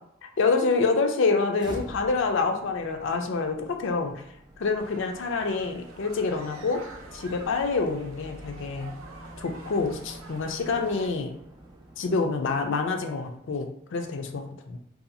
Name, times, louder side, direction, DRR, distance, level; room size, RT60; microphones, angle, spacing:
voice 1, 0.2-4.3 4.6-6.8 7.1-8.9 9.4-11.4 12.0-14.8, left 4 dB, 65° left, 4 dB, 0.4 m, -27 dB
sound 1, 1.6-13.6, right 1 dB, 20° right, 0.3 m, -47 dB
sound 2, 4.8-11.1, right 3 dB, 80° right, 0.5 m, -47 dB
2.7 x 2.3 x 2.6 m, 0.72 s
head